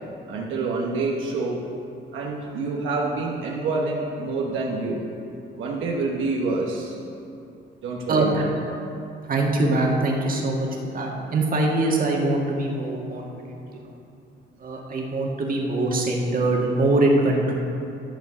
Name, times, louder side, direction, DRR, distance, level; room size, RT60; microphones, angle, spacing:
voice 1, 0.3-1.6 2.1-5.0 5.6-7.0 7.8-8.5, right 3 dB, 80° right, -2 dB, 1.1 m, -27 dB
voice 2, 8.1-8.4 9.3-10.7 10.9-13.9 14.6-17.6, right 2 dB, 45° right, -1 dB, 1.7 m, -23 dB
11.5 x 4.5 x 7.0 m, 2.7 s
cardioid pair, 90°, 20 cm